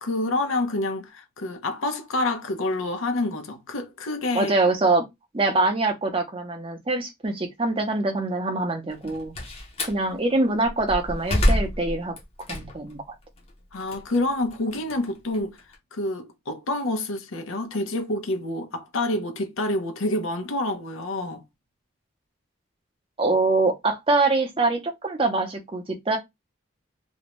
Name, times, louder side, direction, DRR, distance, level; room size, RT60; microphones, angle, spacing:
voice 1, 0.0-4.5 13.7-15.6 15.9-21.4, left 2 dB, 85° left, 0.7 m, -28 dB
voice 2, 4.3-5.0 5.3-9.3 9.9-12.1 12.5-13.0 23.2-26.2, right 3 dB, 25° right, 0.5 m, -24 dB
Slam, 8.9-10.0 10.6-13.0 13.4-15.8, left 1 dB, 30° left, 0.6 m, -27 dB
2.5 x 2.1 x 2.9 m
head